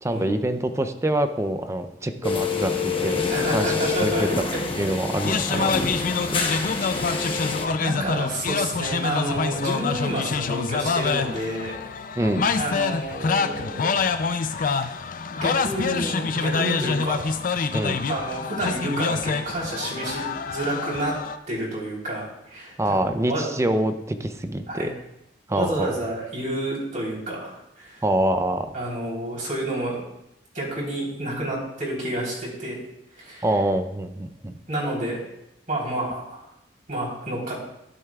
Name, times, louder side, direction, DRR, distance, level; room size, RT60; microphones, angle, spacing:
voice 1, 0.0-3.2 3.5-3.7 4.0-4.3 4.8-5.7 6.5-6.9 12.2-12.4 17.7-18.0 22.8-24.9 25.5-26.0 28.0-28.7 33.4-34.5, right 1 dB, 15° right, 8 dB, 0.5 m, -25 dB
sound 1, 2.2-7.7, left 5 dB, 30° left, 1.0 m, -27 dB
voice 2, 3.3-5.0 5.5-5.8 6.8-7.4 7.8-11.8 12.5-14.0 14.5-14.9 15.3-17.4 18.1-21.2 21.5-23.5 24.7-24.9 25.5-28.0 28.7-30.0 30.5-32.8 33.1-33.5 34.7-35.2 35.7-36.5 36.9-37.6, right 1 dB, 45° right, -4 dB, 3.6 m, -30 dB
sound 2, 5.1-21.4, left 5 dB, 50° left, 0.4 m, -26 dB
12.0 x 9.7 x 2.4 m, 0.84 s
head